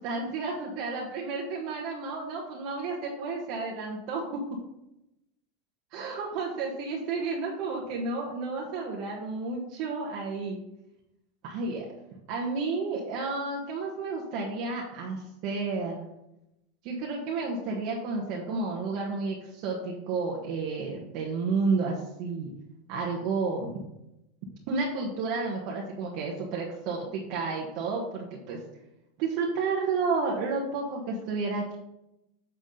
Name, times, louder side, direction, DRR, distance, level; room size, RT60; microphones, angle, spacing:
voice 1, 0.0-4.2 5.9-10.6 11.4-11.8 12.3-16.0 16.8-22.5 22.9-23.7 24.7-28.6 29.2-31.8, right 4 dB, 55° right, -2 dB, 1.3 m, -31 dB
8.0 x 3.5 x 5.3 m, 0.89 s
supercardioid pair, 125°, 0 cm